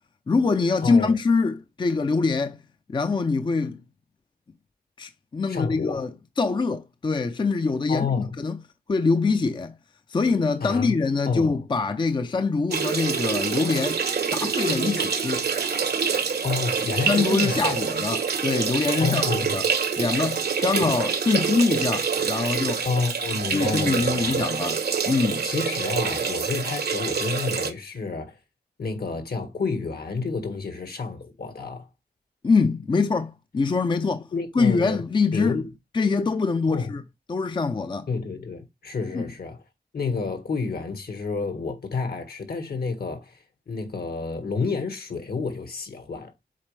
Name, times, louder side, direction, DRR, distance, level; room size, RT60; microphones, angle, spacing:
voice 1, 0.3-2.6 2.9-3.8 5.0-6.1 6.4-8.1 8.4-8.6 8.9-9.8 10.1-14.0 14.3-15.5 17.0-19.7 20.0-22.9 23.5-25.5 32.4-34.3 34.5-35.6 35.9-37.0 37.3-38.1 39.1-39.3, left 4 dB, 30° left, 0.4 m, -24 dB
voice 2, 0.8-1.2 5.5-6.0 7.9-8.4 10.6-10.9 11.3-11.6 16.4-17.7 19.0-19.6 20.7-20.9 22.8-24.5 25.4-28.4 28.8-31.9 34.3-35.0 35.3-35.7 36.7-36.9 38.1-39.6 39.9-46.3, left 4 dB, 70° left, 1.7 m, -29 dB
sound 1, 12.7-27.7, right 6 dB, 75° right, 1.0 m, -26 dB
7.5 x 4.0 x 3.2 m
wide cardioid pair, 110°, 17 cm